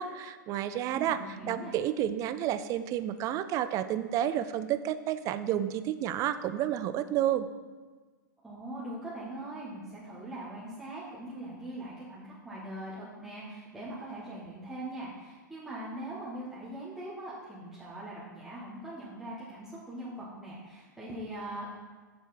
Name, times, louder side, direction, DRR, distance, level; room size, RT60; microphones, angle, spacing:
voice 1, 0.0-7.5, right 11 dB, 30° right, 13 dB, 0.5 m, -30 dB
voice 2, 0.9-1.8 8.4-21.7, right 1 dB, 5° right, -10 dB, 1.7 m, -41 dB
6.8 x 6.4 x 4.4 m, 1.4 s
figure-of-eight pair, 105°, 11 cm